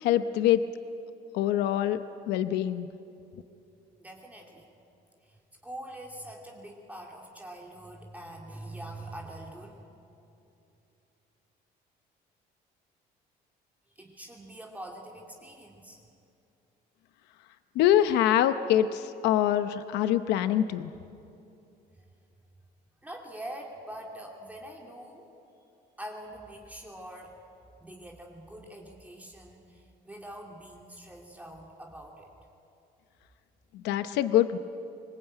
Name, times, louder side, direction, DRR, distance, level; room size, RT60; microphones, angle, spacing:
voice 1, 0.0-0.6 1.3-2.0 2.3-2.9 17.7-20.9 33.7-34.6, left 11 dB, 90° left, 11 dB, 0.8 m, -24 dB
voice 2, 4.0-4.7 5.2-9.9 13.9-16.0 22.0-22.1 23.0-25.3 26.0-27.4 27.8-32.3, right 1 dB, 10° right, 0 dB, 2.8 m, -44 dB
25.0 x 20.5 x 9.0 m, 2.7 s
cardioid pair, 110°, 17 cm